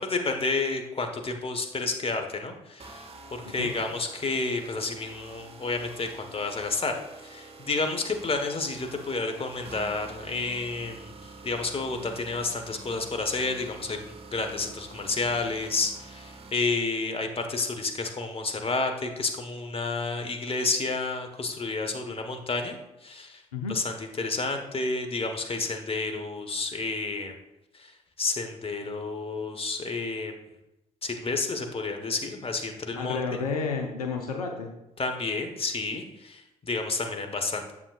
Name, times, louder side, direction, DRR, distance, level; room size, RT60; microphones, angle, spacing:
voice 1, 0.0-23.4 23.7-27.3 27.7-30.3 31.0-33.2 35.0-37.7, left 3 dB, 30° left, 5 dB, 1.3 m, -30 dB
sound 1, 2.8-16.5, right 3 dB, 30° right, 1.2 m, -47 dB
voice 2, 32.9-34.7, left 5 dB, 85° left, 3 dB, 0.7 m, -31 dB
9.6 x 7.5 x 2.5 m, 0.92 s
hypercardioid pair, 50°, 19 cm